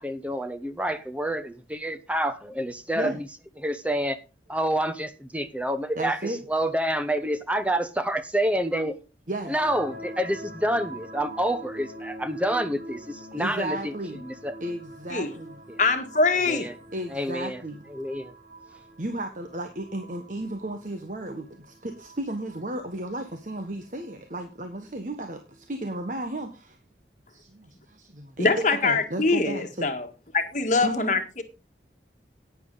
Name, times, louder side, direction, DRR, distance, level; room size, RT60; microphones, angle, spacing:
voice 1, 0.0-3.2 3.6-4.2 4.5-9.0 9.4-14.5 15.7-15.8 16.3-16.7 17.1-17.6 17.9-18.3, right 1 dB, 10° right, 1.0 m, -28 dB
voice 2, 5.9-6.4 9.3-9.5 13.3-14.2 14.6-15.6 16.9-17.8 19.0-26.8 27.3-28.5 28.8-29.9 30.8-31.1, right 1 dB, 45° right, 1.3 m, -34 dB
sound 1, 9.6-26.1, right 1 dB, 70° right, 2.6 m, -45 dB
voice 3, 15.8-16.7 28.4-30.1 30.3-31.4, left 3 dB, 45° left, 1.6 m, -23 dB
11.5 x 9.7 x 4.0 m
head